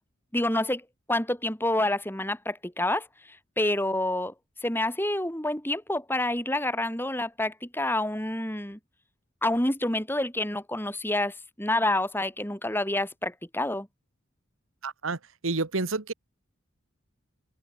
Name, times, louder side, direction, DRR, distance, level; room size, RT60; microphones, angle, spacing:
voice 1, 0.3-3.1 3.6-4.3 4.6-8.8 9.4-13.9, left 1 dB, 10° left, 3.9 m, -28 dB
voice 2, 14.8-15.2 15.4-16.1, right 3 dB, 85° right, 1.5 m, -29 dB
open air
head